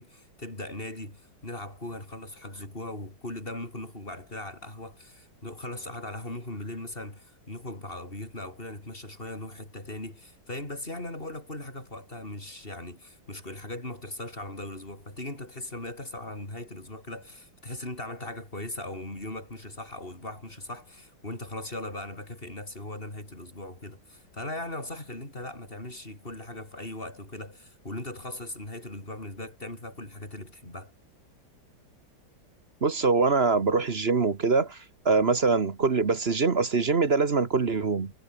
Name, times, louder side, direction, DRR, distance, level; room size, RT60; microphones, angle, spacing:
voice 1, 0.0-30.9, left 1 dB, 25° left, 6.5 m, -39 dB
voice 2, 32.8-34.8 35.0-38.1, right 4 dB, 35° right, 1.4 m, -23 dB
omnidirectional pair, 2.2 m